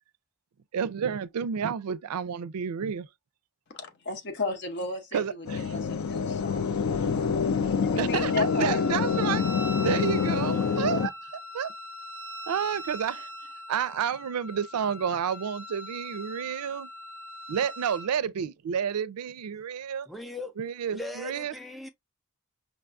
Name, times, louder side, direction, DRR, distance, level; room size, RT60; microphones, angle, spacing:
voice 1, 0.7-3.1 5.1-5.6 8.0-9.4 9.8-11.1 11.5-11.7 12.5-13.3 13.7-16.9 17.5-20.1 20.6-21.5, right 7 dB, 90° right, 0.4 m, -30 dB
voice 2, 3.7-6.8 7.1-7.6 7.8-8.8, left 3 dB, 50° left, 0.8 m, -35 dB
sound 1, 5.4-11.1, left 6 dB, 70° left, 0.4 m, -26 dB
Wind instrument woodwind instrument, 8.1-18.1, equal, 25° right, 0.7 m, -41 dB
voice 3, 20.1-20.5 20.9-21.9, left 2 dB, ahead, 0.4 m, -38 dB
5.3 x 2.3 x 2.4 m
head